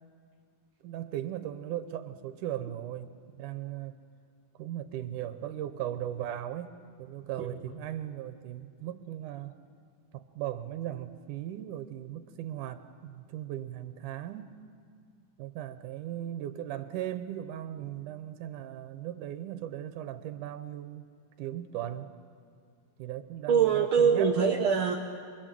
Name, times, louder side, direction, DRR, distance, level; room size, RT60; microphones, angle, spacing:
voice 1, 0.8-3.1 3.4-4.0 4.6-6.7 7.0-9.5 10.1-14.6 15.4-21.1 21.4-22.1 23.0-24.4, right 12 dB, 85° right, 10 dB, 2.5 m, -38 dB
voice 2, 7.4-7.7 23.5-24.9, right 6 dB, 55° right, 0 dB, 1.6 m, -24 dB
27.5 x 21.5 x 7.6 m, 2.2 s
omnidirectional pair, 3.5 m